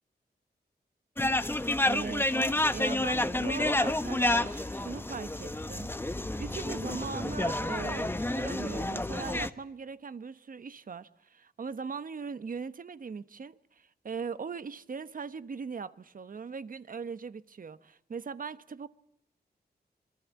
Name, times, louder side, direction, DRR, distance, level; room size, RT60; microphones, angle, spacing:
sound 1, 1.2-9.5, left 1 dB, 15° left, 1.1 m, -29 dB
voice 1, 1.8-5.9 6.4-18.9, right 5 dB, 55° right, 1.1 m, -40 dB
26.0 x 22.5 x 8.3 m
wide cardioid pair, 110°, 17 cm